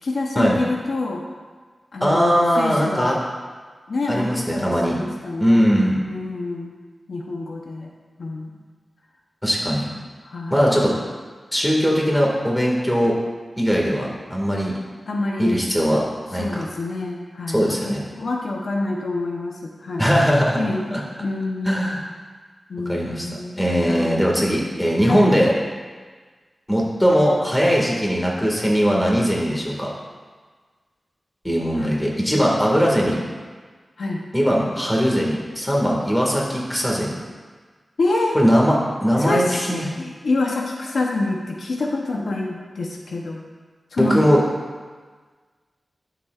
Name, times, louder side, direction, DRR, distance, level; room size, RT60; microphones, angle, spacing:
voice 1, 0.0-1.2 1.9-3.3 3.9-5.6 6.0-6.7 7.1-7.9 8.2-8.6 10.2-10.8 13.8-14.0 15.1-15.6 16.3-20.1 20.6-20.9 21.2-21.8 22.7-23.6 23.9-24.2 25.0-25.3 31.7-31.9 34.0-34.2 38.0-38.4 39.2-43.4 43.9-44.2, left 2 dB, 75° left, 0 dB, 0.9 m, -27 dB
voice 2, 2.0-3.1 4.1-5.0 5.4-6.0 9.4-9.9 10.5-11.0 11.5-13.2 13.6-14.7 15.4-16.0 16.3-16.6 17.5-18.0 20.0-20.6 20.9-21.0 21.6-22.0 22.9-23.3 23.6-25.5 26.7-29.9 31.4-33.2 34.3-37.2 38.3-39.9 44.0-44.4, equal, 10° left, -3 dB, 1.9 m, -20 dB
12.0 x 6.9 x 2.5 m, 1.5 s
wide cardioid pair, 80°, 0 cm